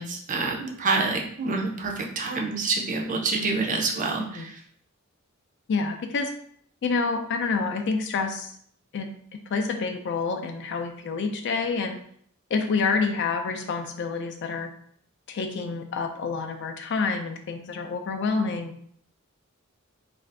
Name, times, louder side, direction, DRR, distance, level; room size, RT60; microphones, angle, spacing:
voice 1, 0.0-4.5, right 3 dB, 40° right, 1 dB, 0.5 m, -27 dB
voice 2, 5.7-6.3 6.8-8.5 8.9-9.1 9.5-12.0 12.5-14.7 15.3-18.7, left 4 dB, 60° left, 6 dB, 0.4 m, -28 dB
2.5 x 2.4 x 3.3 m, 0.63 s
head